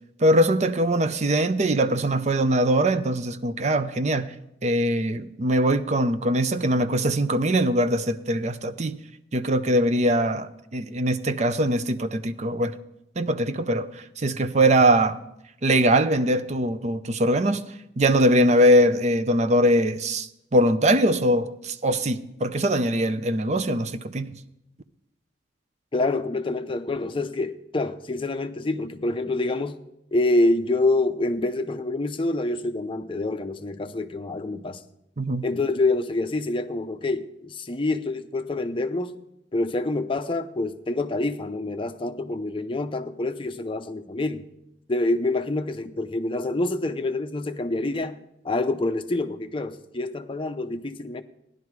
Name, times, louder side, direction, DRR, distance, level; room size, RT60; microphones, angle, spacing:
voice 1, 0.2-4.3 4.6-9.0 9.3-12.8 13.2-15.2 15.6-17.6 18.0-24.3 35.2-35.4, right 1 dB, 40° right, 0.6 m, -22 dB
voice 2, 25.9-29.8 30.1-34.8 35.4-39.2 39.5-44.5 44.9-48.2 48.4-51.2, left 2 dB, 30° left, 0.6 m, -26 dB
15.0 x 11.0 x 4.7 m
head